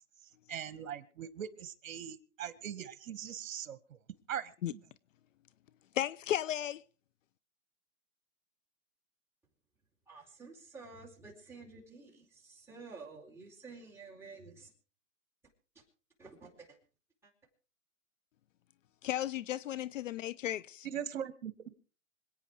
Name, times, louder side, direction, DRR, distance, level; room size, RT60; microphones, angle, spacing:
voice 1, 0.5-4.0 4.3-4.8 20.8-21.8, right 9 dB, 65° right, 1.6 m, -41 dB
voice 2, 5.9-6.8 19.0-20.9, left 12 dB, 65° left, 0.7 m, -34 dB
voice 3, 10.1-14.7 15.7-15.8 16.2-16.8 17.2-17.3, right 4 dB, 5° right, 4.2 m, -51 dB
26.0 x 9.1 x 4.7 m
hypercardioid pair, 150°, 42 cm